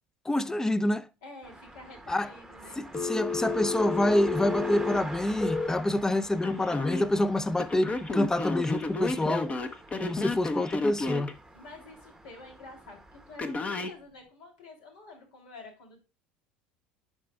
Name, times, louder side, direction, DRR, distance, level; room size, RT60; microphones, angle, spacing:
voice 1, 0.3-1.1 2.1-2.3 2.8-9.5 10.0-11.3, left 1 dB, 10° left, 0.5 m, -27 dB
voice 2, 1.2-2.8 11.5-16.0, left 2 dB, 75° left, 2.6 m, -49 dB
sound 1, 1.4-13.4, right 2 dB, 5° right, 1.0 m, -46 dB
Telephone, 2.9-5.7 6.4-7.0 7.6-11.3 13.4-13.9, left 3 dB, 25° left, 0.9 m, -32 dB
11.0 x 4.2 x 2.2 m
hypercardioid pair, 80°, 5 cm